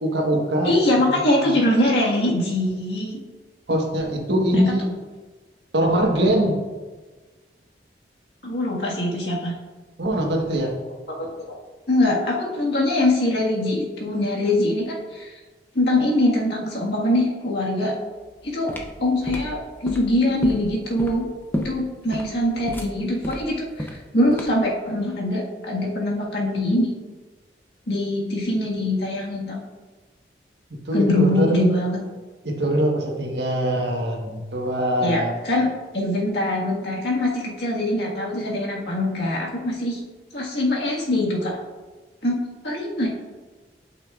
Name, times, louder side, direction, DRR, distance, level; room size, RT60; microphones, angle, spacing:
voice 1, 0.0-0.7 1.1-1.2 3.7-4.9 5.7-6.6 10.0-10.7 30.9-31.6 32.4-35.3, right 1 dB, 75° right, 0 dB, 1.3 m, -22 dB
voice 2, 0.6-3.2 4.5-4.7 8.4-9.5 11.1-11.5 11.9-15.3 15.7-17.9 18.4-18.7 19.0-21.3 21.6-23.9 24.1-26.9 27.9-29.6 30.9-32.0 35.0-35.7 35.9-40.0 40.3-41.6 42.2-43.1, left 1 dB, 70° left, -3 dB, 1.7 m, -23 dB
sound 1, 18.2-24.7, left 1 dB, 10° left, 0.6 m, -32 dB
11.0 x 5.7 x 2.4 m, 1.3 s
head